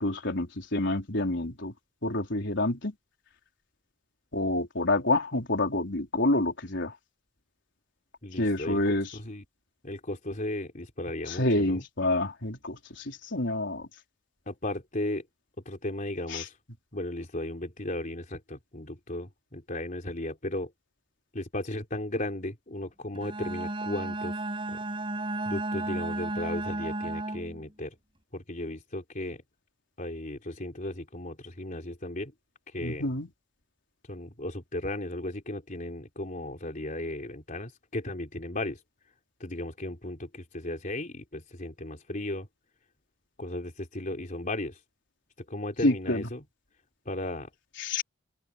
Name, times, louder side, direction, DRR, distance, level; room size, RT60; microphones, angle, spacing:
voice 1, 0.0-1.7 2.0-2.9 4.3-6.9 8.4-9.1 11.3-13.9 16.3-16.4 32.8-33.3 45.8-46.2 47.8-48.0, left 2 dB, 60° left, 4.5 m, -28 dB
voice 2, 8.2-8.8 9.1-9.4 9.8-11.8 14.5-15.2 15.7-16.6 16.9-20.7 21.3-24.3 24.7-24.8 25.5-27.9 28.3-29.4 30.0-32.3 32.7-33.1 34.1-38.8 39.4-42.5 43.4-44.8 45.5-46.4 47.1-47.5, left 1 dB, 40° left, 3.7 m, -35 dB
Bowed string instrument, 23.1-27.6, right 2 dB, 25° right, 5.7 m, -33 dB
open air
head